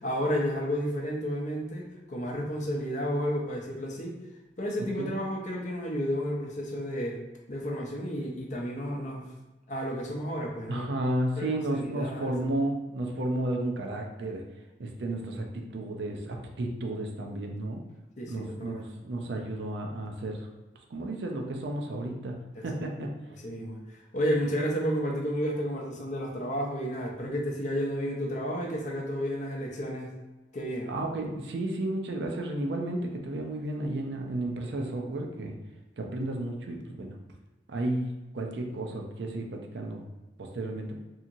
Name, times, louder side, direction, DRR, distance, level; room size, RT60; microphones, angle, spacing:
voice 1, 0.0-4.2 4.6-7.2 7.5-9.3 9.7-10.9 11.4-12.3 18.2-18.9 22.5-22.6 23.4-23.8 24.1-30.1 30.5-30.9, equal, 40° left, -1 dB, 0.5 m, -31 dB
voice 2, 10.7-14.4 14.8-17.8 18.3-20.5 20.9-23.1 30.9-35.6 36.0-37.2 37.7-40.1 40.4-41.0, right 1 dB, 65° right, 2 dB, 0.4 m, -32 dB
2.8 x 2.7 x 2.5 m, 1.1 s
head